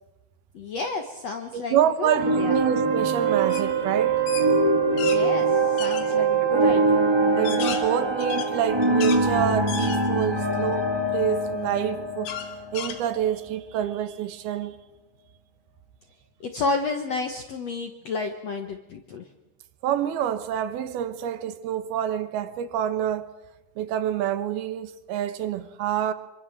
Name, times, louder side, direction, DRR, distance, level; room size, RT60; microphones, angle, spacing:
voice 1, 0.5-2.6 5.0-7.0 16.4-19.2, left 3 dB, 70° left, 1.6 m, -31 dB
voice 2, 1.5-4.2 6.6-6.7 7.3-12.3 12.7-14.8 19.8-23.3 23.8-26.1, right 10 dB, 70° right, 2.9 m, -27 dB
sound 1, 2.1-13.4, right 3 dB, 10° right, 2.1 m, -23 dB
sound 2, 3.5-3.7 4.0-5.2 5.8-6.1 6.7-6.8 7.3-9.2 9.7-10.4 10.9-11.0 12.3-13.5, left 8 dB, 90° left, 4.3 m, -34 dB
25.5 x 25.5 x 7.4 m
omnidirectional pair, 4.9 m